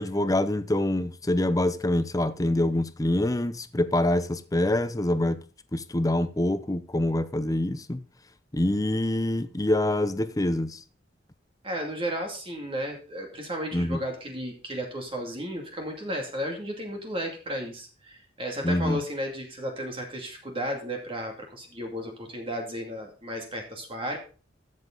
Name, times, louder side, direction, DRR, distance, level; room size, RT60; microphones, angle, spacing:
voice 1, 0.0-5.4 5.7-8.0 8.5-10.8 13.7-14.0 18.6-19.0, left 1 dB, 20° left, 0.7 m, -25 dB
voice 2, 11.6-24.2, equal, 30° right, 2.3 m, -34 dB
13.5 x 7.4 x 3.9 m
head